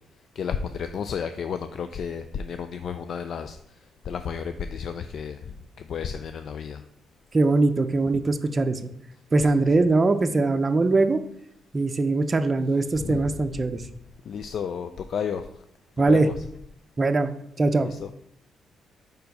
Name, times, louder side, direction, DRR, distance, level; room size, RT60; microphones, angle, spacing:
voice 1, 0.3-6.8 9.6-9.7 13.0-13.3 14.3-15.6 16.0-16.3 17.8-18.1, left 7 dB, 60° left, 9 dB, 0.4 m, -32 dB
voice 2, 7.3-8.8 9.3-11.2 11.7-13.8 16.0-16.3 17.0-17.3 17.6-17.9, right 3 dB, 30° right, 8 dB, 0.5 m, -21 dB
5.2 x 4.5 x 5.3 m, 0.74 s
cardioid pair, 90°, 0 cm